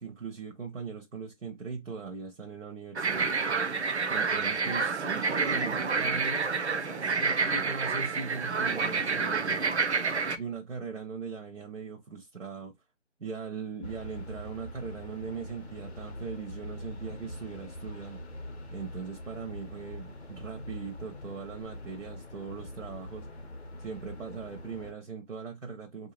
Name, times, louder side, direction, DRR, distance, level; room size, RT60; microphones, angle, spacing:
voice 1, 0.0-3.3 4.1-9.8 10.4-12.7 13.2-18.2 18.7-23.3 23.8-26.1, right 5 dB, 75° right, 0.9 m, -40 dB
sound 1, 3.0-10.4, right 4 dB, 60° right, 0.5 m, -29 dB
sound 2, 13.8-24.9, left 1 dB, 55° left, 0.8 m, -43 dB
3.3 x 2.7 x 2.9 m
figure-of-eight pair, 175°, 38 cm